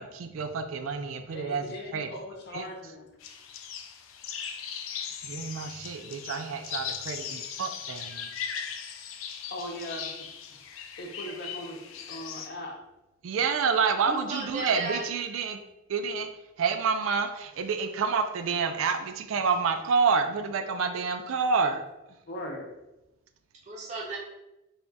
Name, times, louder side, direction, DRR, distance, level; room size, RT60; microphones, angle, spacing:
voice 1, 0.0-1.6 1.9-2.1 2.5-2.7 5.2-8.3 13.2-15.6 15.9-16.3 16.6-21.8, right 5 dB, 85° right, 7 dB, 0.4 m, -28 dB
voice 2, 1.3-3.1 9.5-10.3 10.8-11.8 12.1-12.8 22.3-22.7, left 1 dB, 55° left, 1 dB, 0.7 m, -39 dB
sound 1, 3.2-12.5, left 7 dB, 85° left, 0.4 m, -39 dB
voice 3, 14.0-15.0 23.6-24.2, right 3 dB, 35° right, -3 dB, 0.6 m, -34 dB
3.4 x 2.3 x 3.9 m, 0.95 s
head